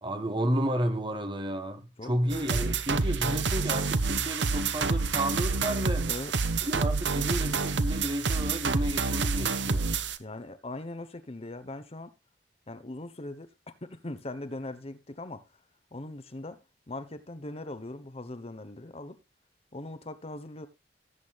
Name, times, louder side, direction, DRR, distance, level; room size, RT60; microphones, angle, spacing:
voice 1, 0.0-6.1 6.6-9.9, equal, 30° right, 1.6 m, -32 dB
voice 2, 2.0-2.7 6.1-6.5 10.2-12.1 12.7-13.5 13.8-15.5 15.9-16.6 16.9-19.2 19.7-20.7, left 2 dB, 35° left, 1.1 m, -40 dB
sound 1, 2.3-10.2, right 4 dB, 85° right, 1.0 m, -28 dB
17.5 x 8.3 x 2.4 m
head